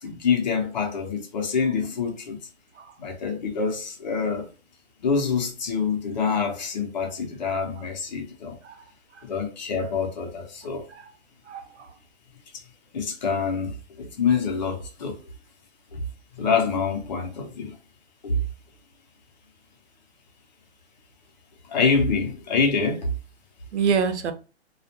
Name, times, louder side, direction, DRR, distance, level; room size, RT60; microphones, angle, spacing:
voice 1, 0.0-2.4 3.0-4.5 5.0-8.6 9.3-10.8 12.9-13.7 14.0-15.2 15.9-16.0 16.3-17.7 18.2-18.4 21.7-23.1, left 5 dB, 40° left, 0.7 m, -26 dB
voice 2, 11.5-11.9 23.7-24.3, right 6 dB, 85° right, 0.6 m, -27 dB
2.4 x 2.1 x 2.8 m
hypercardioid pair, 170°, 34 cm